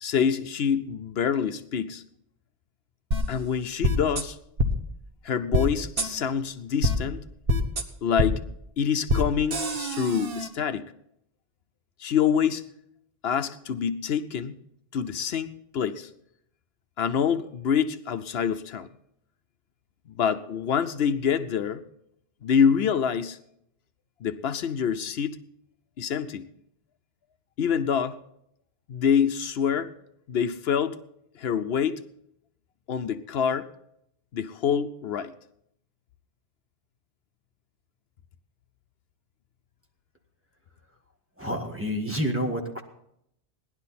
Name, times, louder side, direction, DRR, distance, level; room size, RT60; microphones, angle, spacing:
voice 1, 0.0-2.0 3.3-4.4 5.2-7.2 8.0-8.4 8.8-10.8 12.0-12.6 13.2-14.5 14.9-16.1 17.0-18.9 20.1-21.8 22.4-23.4 24.2-25.4 26.0-26.5 27.6-28.2 28.9-29.9 30.3-31.0 31.4-32.0 32.9-33.7 34.3-35.3, left 7 dB, 75° left, 10 dB, 0.9 m, -26 dB
sound 1, 3.1-3.2 3.8-4.2 4.6-4.7 5.5-5.7 6.0-6.1 6.8-6.9 7.5-7.8 8.2-8.3 9.1-9.2 9.5-10.5, equal, 60° right, 1.4 m, -24 dB
voice 2, 41.4-42.8, equal, 10° right, 1 dB, 1.7 m, -29 dB
18.0 x 11.5 x 4.2 m, 0.74 s
omnidirectional pair, 1.1 m